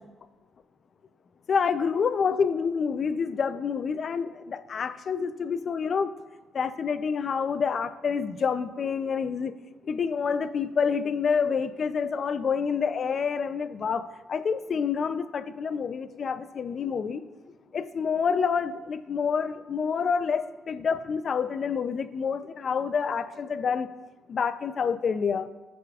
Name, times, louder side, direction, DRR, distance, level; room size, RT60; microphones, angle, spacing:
voice 1, 1.5-6.1 6.5-9.5 9.8-17.2 17.7-23.9 24.3-25.5, left 6 dB, 50° left, 13 dB, 0.4 m, -28 dB
14.0 x 5.0 x 2.4 m, 1.2 s
cardioid pair, 90°, 0 cm